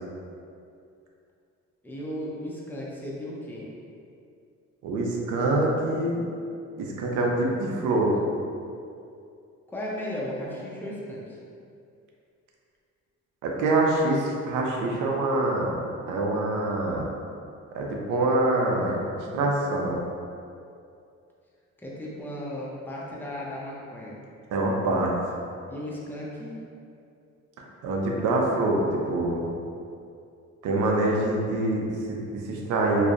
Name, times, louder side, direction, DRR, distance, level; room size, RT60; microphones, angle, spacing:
voice 1, 1.8-3.7 9.7-11.4 21.8-24.2 25.7-26.6, left 1 dB, 5° left, -5 dB, 0.4 m, -35 dB
voice 2, 4.8-6.2 6.8-8.1 13.4-15.7 16.1-17.1 17.7-19.0 19.3-20.0 24.5-25.1 27.8-29.5 30.6-33.1, right 2 dB, 80° right, -1 dB, 0.5 m, -25 dB
2.5 x 2.0 x 2.4 m, 2.5 s
cardioid pair, 90°, 30 cm